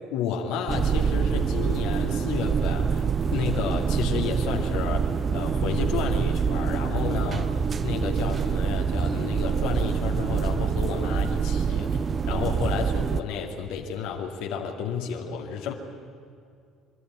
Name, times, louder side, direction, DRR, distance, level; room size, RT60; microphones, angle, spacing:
voice 1, 0.1-5.0 5.3-11.9 12.3-15.7, left 6 dB, 70° left, 2 dB, 2.0 m, -31 dB
sound 1, 0.7-13.2, right 6 dB, 35° right, 0.7 m, -25 dB
25.5 x 12.5 x 9.6 m, 2.3 s
hypercardioid pair, 60°, 0 cm